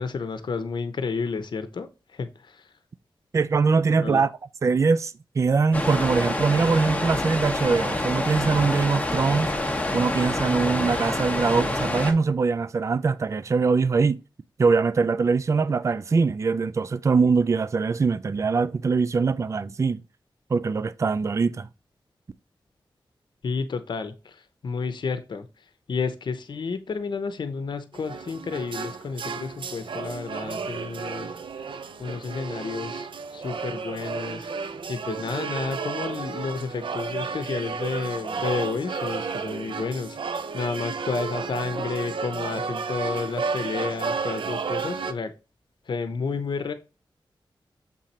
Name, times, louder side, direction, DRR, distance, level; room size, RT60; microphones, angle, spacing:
voice 1, 0.0-2.7 3.9-4.2 23.4-31.3 32.0-34.5 34.9-45.3 45.9-46.7, left 4 dB, 60° left, 0.8 m, -31 dB
voice 2, 3.3-4.3 4.6-9.5 9.9-14.2 14.6-20.0 20.5-21.7, right 4 dB, 35° right, 0.4 m, -22 dB
sound 1, 5.7-12.1, left 1 dB, 15° left, 1.1 m, -27 dB
sound 2, 27.9-45.1, right 5 dB, 75° right, 0.8 m, -32 dB
7.4 x 3.8 x 4.2 m
wide cardioid pair, 160°, 9 cm